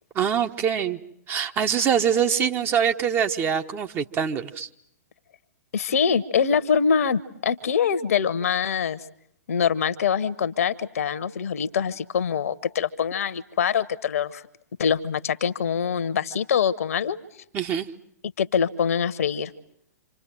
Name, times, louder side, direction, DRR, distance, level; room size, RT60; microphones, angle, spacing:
voice 1, 0.1-1.0 1.3-4.7 17.5-17.9, right 8 dB, 25° right, 7 dB, 1.2 m, -24 dB
voice 2, 5.7-9.0 9.5-14.4 14.8-17.2 18.4-19.5, left 7 dB, 60° left, 17 dB, 1.1 m, -24 dB
27.0 x 26.5 x 7.7 m, 0.72 s
figure-of-eight pair, 110°, 9 cm